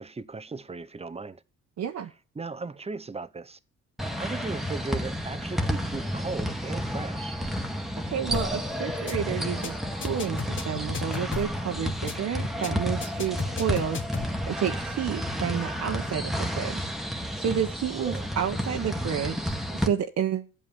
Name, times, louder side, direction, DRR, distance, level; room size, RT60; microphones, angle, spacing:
voice 1, 0.0-1.4 2.3-3.6 4.2-7.4 17.9-18.3, right 3 dB, 20° right, 1.0 m, -37 dB
voice 2, 1.8-2.1 8.0-16.9 17.4-20.5, right 8 dB, 60° right, 1.3 m, -30 dB
sound 1, 4.0-19.9, equal, ahead, 1.7 m, -31 dB
sound 2, 8.3-8.6 8.9-9.1 9.4-9.7 10.0-11.6 11.9-12.1 12.4-12.7 13.0-14.3, left 5 dB, 40° left, 1.6 m, -34 dB
13.5 x 8.4 x 7.3 m
cardioid pair, 90°, 30 cm